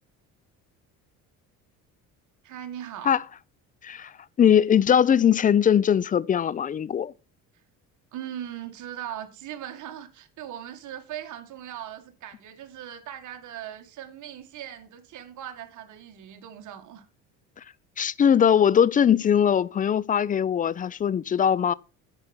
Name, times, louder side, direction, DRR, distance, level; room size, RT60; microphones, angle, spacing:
voice 1, 2.4-3.2 8.1-17.0, right 10 dB, 60° right, 1.8 m, -39 dB
voice 2, 4.4-7.1 18.0-21.7, left 8 dB, 25° left, 0.4 m, -20 dB
8.8 x 5.3 x 5.9 m
cardioid pair, 100°, 34 cm